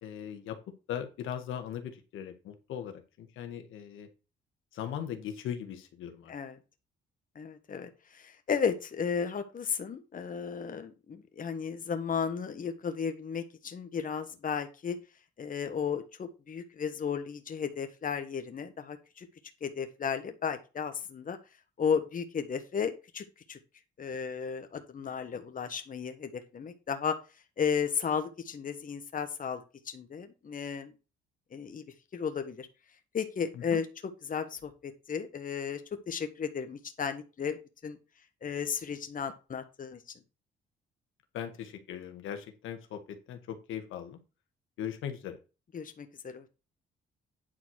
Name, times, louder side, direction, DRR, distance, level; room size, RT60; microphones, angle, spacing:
voice 1, 0.0-0.6 0.9-4.1 4.7-6.3 33.5-33.8 41.3-44.2 44.8-45.4, left 9 dB, 85° left, 7 dB, 1.7 m, -39 dB
voice 2, 6.3-6.6 7.3-15.0 15.4-19.3 19.6-21.4 21.8-23.6 24.0-27.1 27.6-29.6 29.8-30.9 31.5-31.8 32.1-32.7 33.1-33.9 34.2-37.6 37.8-38.0 38.4-40.0 45.7-46.4, left 6 dB, 45° left, 7 dB, 1.4 m, -34 dB
9.7 x 4.1 x 6.4 m, 0.30 s
cardioid pair, 90°, 20 cm